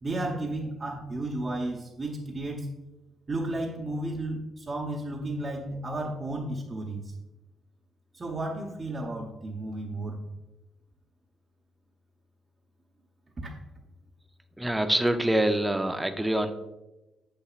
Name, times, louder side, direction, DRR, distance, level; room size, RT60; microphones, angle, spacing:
voice 1, 0.0-2.7 3.3-7.1 8.1-10.2 13.4-13.5, right 1 dB, 30° right, -2 dB, 0.9 m, -33 dB
voice 2, 14.6-16.5, right 1 dB, 10° right, 7 dB, 0.6 m, -25 dB
7.5 x 6.8 x 2.5 m, 1.0 s
cardioid pair, 90°, 0 cm